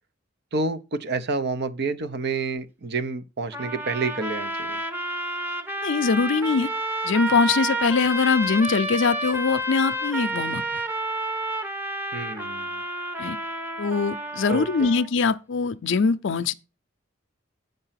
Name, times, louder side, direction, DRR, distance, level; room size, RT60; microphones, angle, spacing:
voice 1, 0.5-4.8 12.1-12.8 14.5-14.9, right 3 dB, 55° right, 0.7 m, -29 dB
sound 1, 3.5-15.1, right 1 dB, 10° right, 0.9 m, -30 dB
voice 2, 5.8-6.7 7.0-10.8 13.2-13.4 13.8-16.5, left 5 dB, 65° left, 0.5 m, -22 dB
8.9 x 5.3 x 5.7 m
head